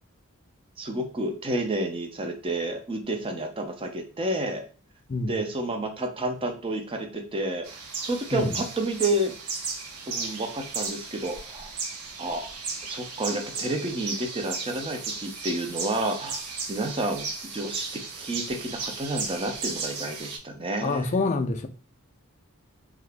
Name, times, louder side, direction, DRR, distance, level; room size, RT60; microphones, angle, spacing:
voice 1, 0.8-4.6 5.3-7.7 8.0-9.4 10.1-11.7 12.2-12.4 12.8-17.2 17.5-21.2, right 1 dB, 25° right, 0.5 m, -30 dB
sound 1, 7.6-20.4, right 4 dB, 80° right, 0.7 m, -35 dB
voice 2, 20.8-21.7, left 3 dB, 35° left, 0.4 m, -26 dB
2.8 x 2.4 x 3.3 m
head